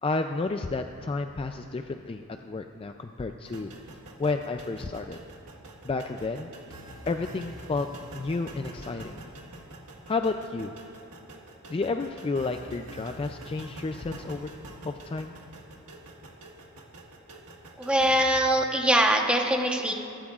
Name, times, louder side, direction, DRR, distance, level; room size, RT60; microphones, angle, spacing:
voice 1, 0.0-3.7 4.2-5.2 5.8-6.8 7.0-7.9 8.1-9.2 10.1-10.7 11.7-14.5 14.8-15.3, left 3 dB, 25° left, 6 dB, 0.3 m, -31 dB
sound 1, 3.5-18.4, right 1 dB, 85° right, 1.6 m, -45 dB
voice 2, 17.8-19.9, right 1 dB, 5° right, 1 dB, 1.0 m, -23 dB
23.5 x 12.5 x 2.4 m, 2.9 s
head